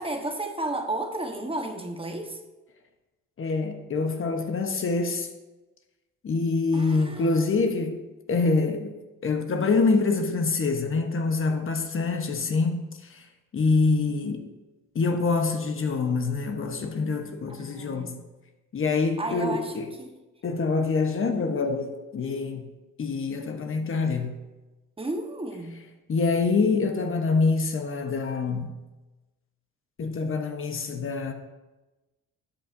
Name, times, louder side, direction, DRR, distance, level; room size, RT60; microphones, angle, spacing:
voice 1, 0.0-2.4 6.7-7.4 17.5-18.2 19.2-20.2 25.0-25.8, right 2 dB, 20° right, 1.2 m, -33 dB
voice 2, 3.4-5.3 6.2-8.0 8.3-9.0 9.2-13.3 13.5-14.5 14.9-18.2 18.7-19.9 20.4-22.7 23.0-24.4 26.1-28.8 30.0-31.3, left 4 dB, 45° left, 1.0 m, -25 dB
13.0 x 8.6 x 2.6 m
cardioid pair, 90°, 30 cm